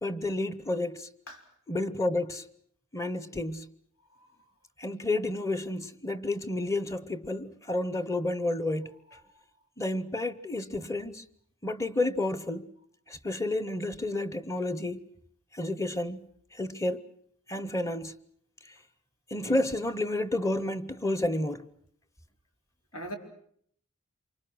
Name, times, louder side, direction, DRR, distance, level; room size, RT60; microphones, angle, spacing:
voice 1, 0.0-1.1 1.7-2.4 2.9-3.7 4.8-8.9 9.8-11.2 11.6-12.7 13.1-15.1 15.5-16.3 16.5-17.1 17.5-18.2 19.3-21.6, left 2 dB, 15° left, 0.9 m, -30 dB
voice 2, 1.3-1.4 4.1-4.3 22.9-23.2, right 1 dB, 85° left, 4.2 m, -40 dB
27.5 x 24.5 x 6.3 m
head